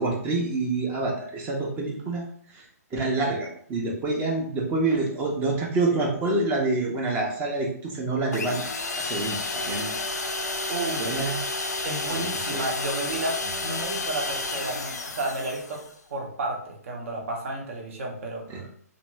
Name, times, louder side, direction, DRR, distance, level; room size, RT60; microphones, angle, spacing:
voice 1, 0.0-2.2 2.5-2.6 2.9-8.6 9.0-9.9 11.0-11.4 12.1-12.3 18.5-18.6, right 2 dB, 20° right, 0 dB, 0.7 m, -27 dB
sound 1, 8.3-15.9, left 3 dB, 80° left, 0.5 m, -31 dB
voice 2, 10.7-11.2 11.8-15.8 16.1-18.7, right 2 dB, 50° right, 1 dB, 0.9 m, -32 dB
2.6 x 2.6 x 3.2 m, 0.62 s
figure-of-eight pair, 130°, 9 cm